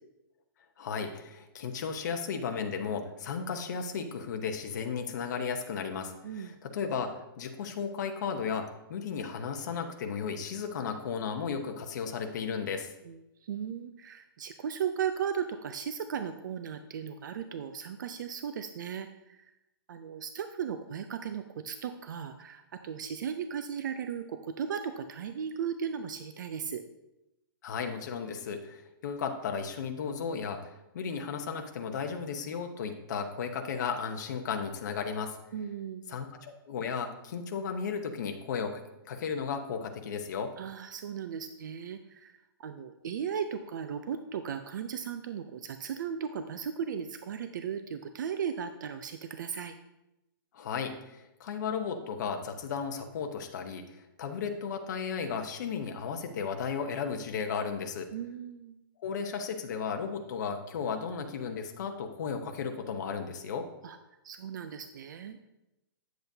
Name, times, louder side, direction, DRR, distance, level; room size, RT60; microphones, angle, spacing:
voice 1, 0.8-12.9 27.6-35.4 36.1-38.8 39.1-40.5 50.5-58.1 59.0-63.7, left 6 dB, 50° left, 5 dB, 1.0 m, -35 dB
voice 2, 6.2-6.6 13.0-19.5 19.9-26.8 35.5-36.1 40.6-49.8 58.1-58.8 63.8-64.0 64.2-65.5, right 7 dB, 50° right, 8 dB, 0.5 m, -36 dB
9.0 x 7.8 x 2.7 m, 0.92 s
hypercardioid pair, 165°, 13 cm